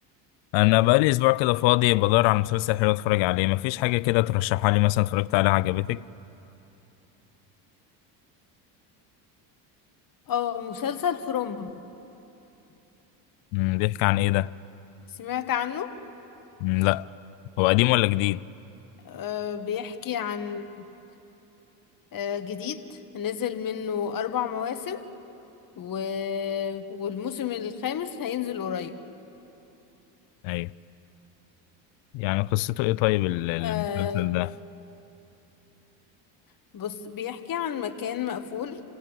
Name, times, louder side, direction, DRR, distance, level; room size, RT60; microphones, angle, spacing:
voice 1, 0.5-6.0 13.5-14.5 16.6-17.1 17.6-18.4 30.4-30.7 32.1-34.5, left 20 dB, 70° left, 0.6 m, -23 dB
voice 2, 10.3-11.7 15.1-15.9 19.0-20.8 22.1-25.0 25.8-29.0 33.6-34.3 36.7-38.8, left 8 dB, 45° left, 1.7 m, -31 dB
28.5 x 17.0 x 9.1 m
supercardioid pair, 90°, 48 cm